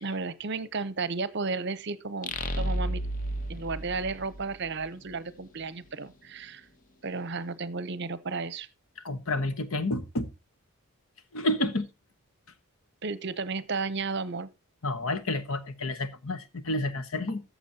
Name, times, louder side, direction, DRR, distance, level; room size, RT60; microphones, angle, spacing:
voice 1, 0.0-3.0 3.5-6.6 7.0-8.7 13.0-14.5, right 4 dB, 50° right, 0.7 m, -33 dB
sound 1, 2.2-4.9, equal, 35° left, 0.8 m, -32 dB
voice 2, 9.0-10.3 11.3-11.9 14.8-17.4, left 1 dB, 70° left, 1.1 m, -30 dB
14.5 x 7.2 x 2.8 m
head